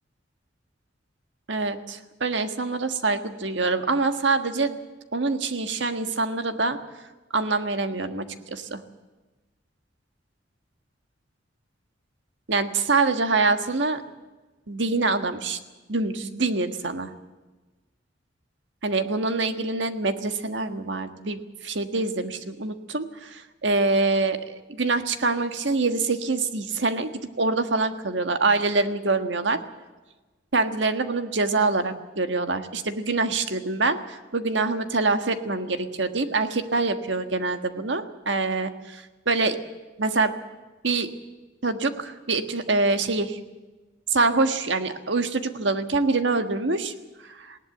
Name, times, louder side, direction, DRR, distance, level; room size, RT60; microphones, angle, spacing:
voice 1, 1.5-4.8 5.1-6.8 7.3-8.8 12.5-14.0 14.7-15.6 15.9-17.1 18.8-29.6 30.5-39.6 40.0-40.4 40.8-41.1 41.6-43.4 44.1-46.9 47.2-47.6, right 3 dB, 70° right, 8 dB, 1.6 m, -25 dB
19.5 x 17.5 x 8.0 m, 1.2 s
head